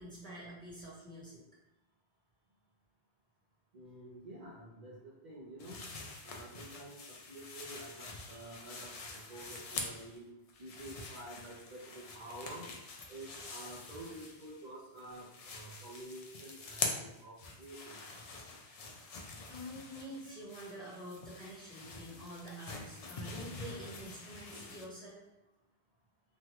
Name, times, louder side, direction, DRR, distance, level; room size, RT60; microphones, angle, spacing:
voice 1, 0.0-1.4 8.1-8.5 19.5-25.2, equal, 5° left, -8 dB, 1.0 m, -47 dB
voice 2, 3.7-5.8 6.2-10.3 10.6-12.7 13.1-18.0, right 1 dB, 50° right, -7 dB, 0.7 m, -49 dB
sound 1, 5.6-10.2 10.5-14.7 15.0-24.9, left 3 dB, 60° left, 0.4 m, -45 dB
3.1 x 2.3 x 2.8 m, 0.88 s
omnidirectional pair, 1.1 m